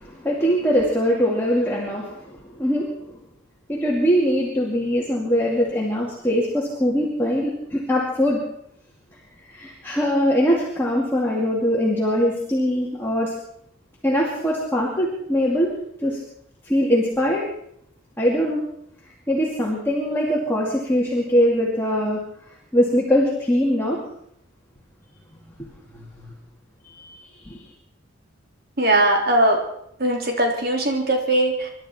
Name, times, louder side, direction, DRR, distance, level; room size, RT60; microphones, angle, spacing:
voice 1, 0.0-3.2 3.7-8.4 9.5-13.3 14.0-15.7 16.0-16.2 16.6-17.4 18.2-18.6 19.3-22.2 22.7-24.0 25.3-25.4 25.9-26.3 26.8-27.6, equal, 10° left, -5 dB, 2.4 m, -22 dB
voice 2, 28.8-29.6 30.0-31.7, right 1 dB, 50° right, 1 dB, 3.1 m, -20 dB
26.5 x 12.0 x 4.4 m, 0.72 s
head